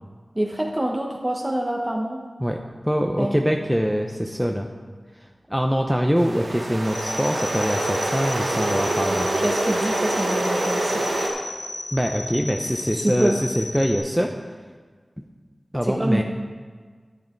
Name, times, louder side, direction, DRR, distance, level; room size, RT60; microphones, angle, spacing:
voice 1, 0.3-2.2 3.2-3.4 9.0-11.1 12.9-13.4 15.8-16.2, right 1 dB, 25° right, -1 dB, 1.1 m, -26 dB
voice 2, 2.4-4.7 5.2-9.3 11.9-14.3 15.7-16.2, equal, 5° right, 2 dB, 0.7 m, -24 dB
sound 1, 6.2-11.3, right 1 dB, 90° right, 1.5 m, -25 dB
sound 2, 6.8-14.0, left 1 dB, 65° left, 2.8 m, -35 dB
11.0 x 8.2 x 4.5 m, 1.5 s
wide cardioid pair, 50°, 0 cm